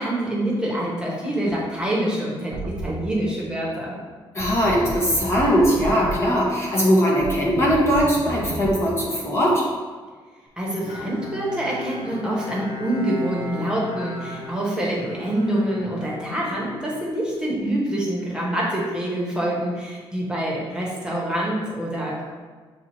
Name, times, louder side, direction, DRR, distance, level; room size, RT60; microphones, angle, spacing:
voice 1, 0.0-3.9 10.6-22.2, right 1 dB, 10° right, -5 dB, 1.1 m, -26 dB
sound 1, 1.5-1.6 2.5-3.1 4.4-6.3 7.2-8.8, right 2 dB, 45° right, 0.5 m, -32 dB
voice 2, 4.3-9.6, equal, 30° left, -4 dB, 0.9 m, -20 dB
Bowed string instrument, 10.8-17.5, left 2 dB, 85° left, 1.0 m, -37 dB
7.1 x 2.4 x 3.1 m, 1.4 s
cardioid pair, 125°, 9 cm